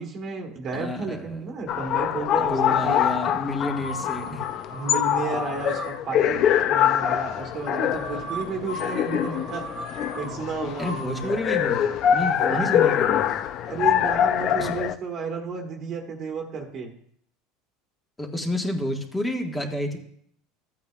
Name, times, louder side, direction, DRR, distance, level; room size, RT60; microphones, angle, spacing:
voice 1, 0.0-3.0 4.7-11.4 12.5-12.8 13.6-16.9, right 4 dB, 45° right, 2 dB, 1.4 m, -32 dB
voice 2, 0.7-1.5 2.4-4.5 10.8-13.4 14.6-14.7 18.2-20.0, left 1 dB, 15° left, 2 dB, 1.5 m, -30 dB
sound 1, 1.7-15.0, left 10 dB, 50° left, 0.4 m, -24 dB
sound 2, 2.6-3.2 3.7-12.3, equal, 85° left, 4.0 m, -39 dB
14.0 x 8.5 x 2.4 m, 0.65 s
supercardioid pair, 100°, 0 cm